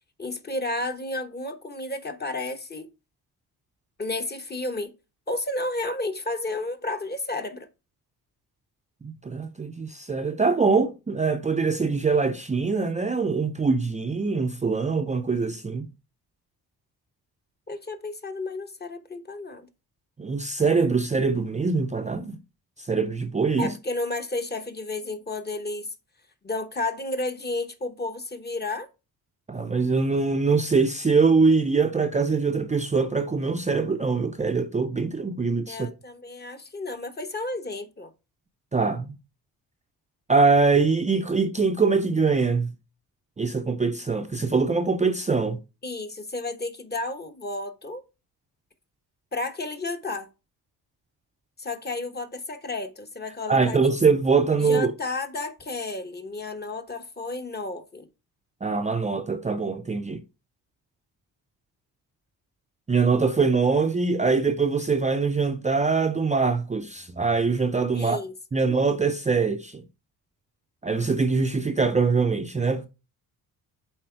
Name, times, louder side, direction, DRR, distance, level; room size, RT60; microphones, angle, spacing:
voice 1, 0.2-2.9 4.0-4.9 5.3-7.7 17.7-19.7 23.6-25.9 26.4-28.9 35.7-38.1 45.8-48.0 49.3-50.3 51.6-53.8 54.6-58.1 67.9-68.6, left 2 dB, 25° left, 1.1 m, -32 dB
voice 2, 9.0-15.9 20.2-22.4 22.8-23.7 29.5-35.9 38.7-39.1 40.3-42.7 43.4-45.6 53.5-54.9 58.6-60.2 62.9-68.2 68.5-69.8 70.8-72.9, right 4 dB, 20° right, 0.5 m, -23 dB
7.7 x 4.3 x 4.5 m
cardioid pair, 95°, 40 cm